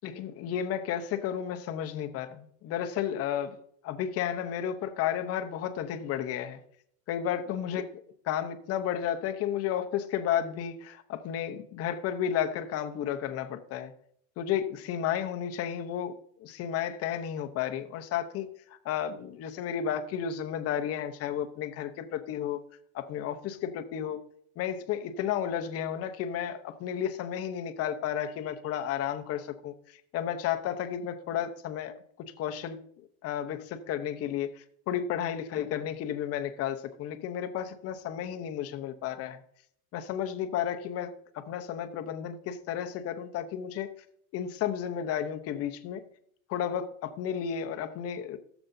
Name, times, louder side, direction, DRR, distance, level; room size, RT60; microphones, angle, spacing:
voice 1, 0.0-3.6 3.8-6.6 7.1-7.9 8.3-13.9 14.4-18.5 18.8-22.6 22.9-24.2 24.6-29.7 30.1-31.9 32.4-32.8 33.2-39.4 39.9-43.9 44.3-46.0 46.5-48.4, left 9 dB, 35° left, 8 dB, 0.8 m, -32 dB
14.0 x 7.0 x 2.7 m, 0.66 s
supercardioid pair, 145°, 43 cm